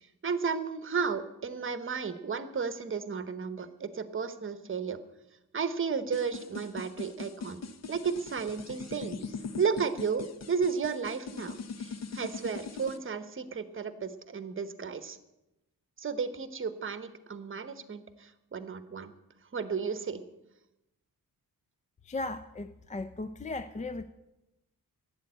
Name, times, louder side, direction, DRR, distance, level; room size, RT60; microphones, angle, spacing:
voice 1, 0.0-5.0 5.5-7.6 7.9-9.2 9.6-15.2 16.0-19.1 19.5-20.2, right 5 dB, 35° right, 12 dB, 1.0 m, -33 dB
sound 1, 6.1-13.0, left 4 dB, 45° left, 0.8 m, -41 dB
voice 2, 22.0-24.0, left 2 dB, 20° left, 11 dB, 0.4 m, -36 dB
12.0 x 9.1 x 8.6 m, 0.95 s
wide cardioid pair, 155°, 36 cm